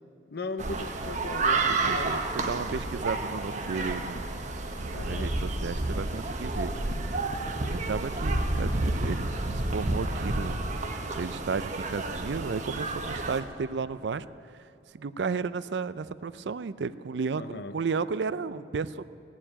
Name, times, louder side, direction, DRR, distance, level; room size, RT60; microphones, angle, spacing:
voice 1, 0.3-2.1 4.9-5.3 17.3-17.7, left 2 dB, 65° left, 11 dB, 0.7 m, -37 dB
sound 1, 0.6-13.4, right 2 dB, 45° right, 1.1 m, -30 dB
voice 2, 1.7-4.2 4.7-6.7 7.7-10.7 11.1-14.3 15.0-19.1, right 5 dB, 70° right, 15 dB, 0.4 m, -33 dB
16.5 x 7.3 x 10.0 m, 2.5 s
head